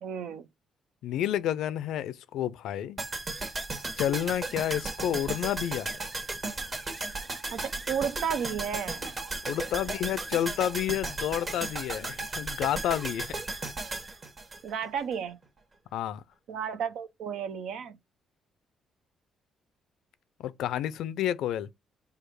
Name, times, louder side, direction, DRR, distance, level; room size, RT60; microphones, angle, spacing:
voice 1, 0.0-0.5 7.5-9.1 14.6-15.4 16.5-18.0, right 7 dB, 80° right, 0.6 m, -33 dB
voice 2, 1.0-3.0 4.0-5.9 9.5-13.3 15.9-16.2 20.4-21.7, left 11 dB, 85° left, 0.4 m, -30 dB
sound 1, 3.0-15.2 15.4-15.5, right 3 dB, 35° right, 1.3 m, -35 dB
4.8 x 2.4 x 4.6 m
cardioid pair, 90°, 0 cm